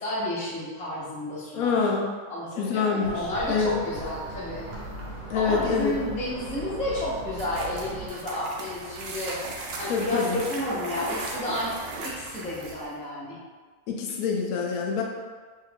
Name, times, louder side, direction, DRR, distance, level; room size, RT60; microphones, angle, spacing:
voice 1, 0.0-1.9 2.3-4.6 5.3-9.4 9.8-11.8 12.0-13.4, left 1 dB, 10° left, -8 dB, 0.3 m, -31 dB
voice 2, 1.5-2.1 2.6-3.2 3.5-3.8 5.3-5.9 9.9-10.4 13.9-15.0, left 5 dB, 75° left, 0 dB, 1.0 m, -25 dB
sound 1, 3.0-8.1, equal, 55° right, 0.8 m, -38 dB
sound 2, 7.3-12.9, right 2 dB, 85° right, 0.5 m, -37 dB
3.2 x 2.3 x 3.4 m, 1.4 s
omnidirectional pair, 1.6 m